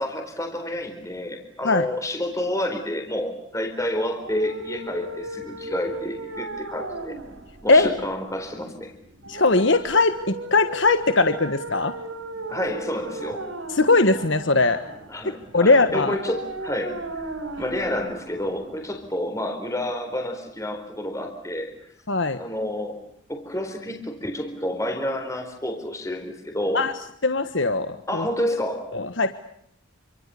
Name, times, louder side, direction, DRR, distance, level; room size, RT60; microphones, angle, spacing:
voice 1, 0.0-7.1 7.6-8.9 12.5-13.4 15.1-17.0 17.6-21.7 22.4-23.0 23.3-26.8 28.1-28.9, left 1 dB, 15° left, 4 dB, 4.1 m, -29 dB
sound 1, 4.1-19.1, right 2 dB, 85° right, 5.9 m, -36 dB
voice 2, 9.3-11.9 13.7-14.8 15.5-16.1 22.1-22.4 26.7-26.9 27.2-28.3 28.9-29.3, left 3 dB, 60° left, 9 dB, 1.4 m, -20 dB
28.5 x 26.5 x 7.0 m, 0.71 s
head